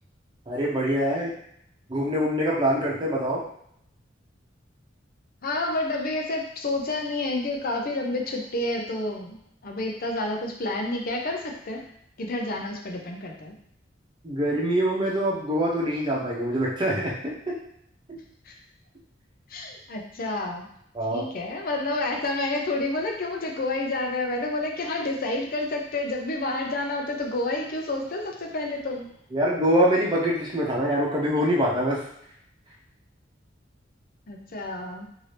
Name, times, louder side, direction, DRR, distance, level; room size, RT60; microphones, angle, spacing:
voice 1, 0.5-1.3 1.9-3.4 14.2-17.6 20.9-21.2 29.3-32.0, equal, 25° right, -5 dB, 0.8 m, -24 dB
voice 2, 5.4-9.4 9.6-11.8 12.2-13.6 18.5-18.6 19.5-20.7 21.1-29.1 34.3-35.1, left 2 dB, 50° left, 1 dB, 0.6 m, -29 dB
2.7 x 2.7 x 3.3 m, 0.71 s
head